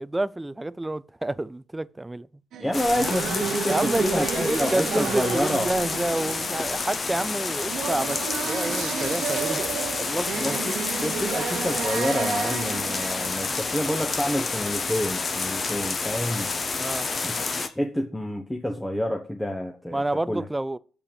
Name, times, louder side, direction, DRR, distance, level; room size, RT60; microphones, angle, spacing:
voice 1, 0.0-2.3 2.6-2.7 3.7-10.5 16.8-17.1 19.9-20.8, right 1 dB, 10° right, 0.4 m, -29 dB
sound 1, 2.5-14.4, right 8 dB, 75° right, 0.8 m, -32 dB
voice 2, 2.6-5.7 10.3-16.5 17.2-20.5, equal, 5° left, 1.0 m, -28 dB
sound 2, 2.7-17.7, left 4 dB, 35° left, 0.9 m, -29 dB
6.8 x 5.4 x 7.2 m
cardioid pair, 90°, 0 cm